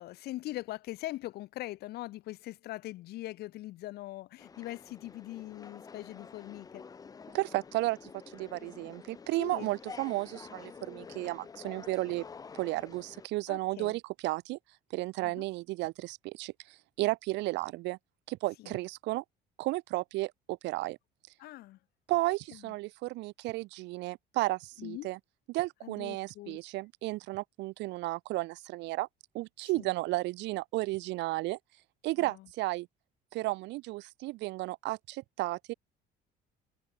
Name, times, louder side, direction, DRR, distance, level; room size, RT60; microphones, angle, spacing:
voice 1, 0.0-6.8 9.4-9.7 13.5-14.0 15.2-15.4 18.6-18.8 21.4-21.8 22.5-22.7 24.8-25.1 25.8-26.6 29.7-29.9 32.2-32.5, left 17 dB, 65° left, 5.6 m, -42 dB
sound 1, 4.4-13.3, left 5 dB, 20° left, 3.7 m, -49 dB
voice 2, 7.3-12.2 12.5-14.6 14.9-18.0 18.3-19.2 19.6-21.0 22.1-25.2 25.5-29.1 29.3-31.6 32.0-32.9 33.3-35.7, right 20 dB, 85° right, 4.7 m, -33 dB
cardioid pair, 175°, 18 cm